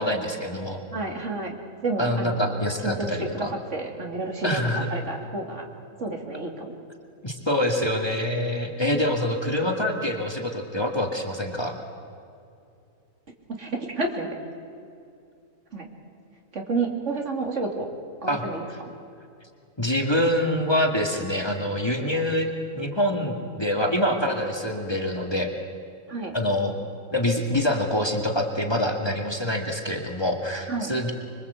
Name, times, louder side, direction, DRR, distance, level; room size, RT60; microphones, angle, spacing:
voice 1, 0.0-0.8 2.0-3.5 4.4-4.9 7.2-11.8 18.3-18.4 19.8-25.5 26.3-26.8 27.1-31.1, left 1 dB, 20° left, 2 dB, 2.2 m, -25 dB
voice 2, 0.9-1.6 1.8-2.5 2.8-5.6 6.0-6.7 13.6-14.3 15.7-15.9 16.5-17.9 18.2-18.7 26.1-26.4 30.7-30.9, right 3 dB, 60° right, 2 dB, 2.9 m, -30 dB
26.0 x 23.0 x 8.2 m, 2.5 s
omnidirectional pair, 1.4 m